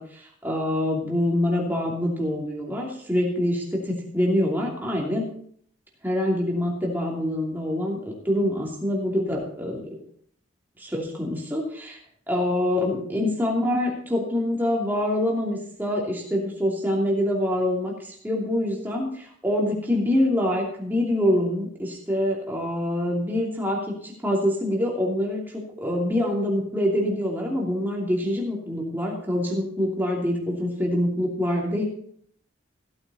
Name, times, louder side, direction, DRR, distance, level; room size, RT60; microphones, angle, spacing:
voice 1, 0.0-5.3 6.0-9.8 10.8-12.0 12.3-31.8, left 1 dB, 10° right, -2 dB, 2.7 m, -25 dB
15.5 x 8.8 x 4.2 m, 0.62 s
head